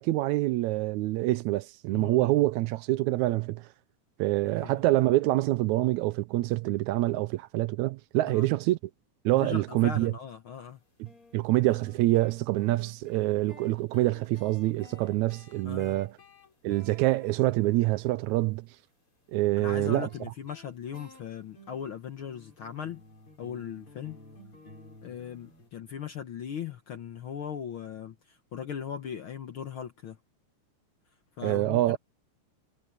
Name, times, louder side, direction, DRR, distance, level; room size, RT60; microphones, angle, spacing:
voice 1, 0.0-3.7 4.2-8.8 9.3-10.1 11.3-16.1 16.6-18.7 19.3-20.1 31.4-32.0, right 17 dB, 80° right, 1.8 m, -26 dB
voice 2, 1.9-2.3 4.5-4.7 8.3-8.5 9.3-10.8 15.6-16.0 19.6-23.0 23.4-24.2 25.0-30.2 31.4-32.0, left 8 dB, 65° left, 1.4 m, -38 dB
sound 1, 10.6-10.7 11.1-18.3 19.8-25.7, left 1 dB, 40° left, 7.0 m, -53 dB
omnidirectional pair, 3.5 m